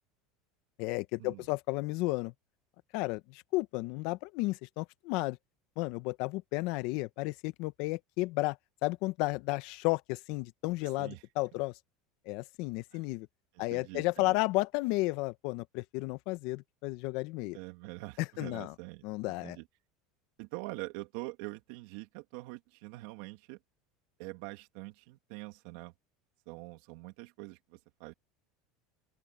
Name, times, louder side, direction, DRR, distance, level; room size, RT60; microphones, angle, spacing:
voice 1, 0.8-2.3 2.9-5.4 5.8-8.6 8.8-11.7 12.3-13.3 13.6-17.6 18.2-18.7 19.0-19.6, left 22 dB, 65° left, 1.0 m, -33 dB
voice 2, 13.5-14.4 17.5-19.7 20.4-23.6 24.2-25.9 26.5-28.1, right 23 dB, 70° right, 2.7 m, -44 dB
open air
supercardioid pair, 125°, 0 cm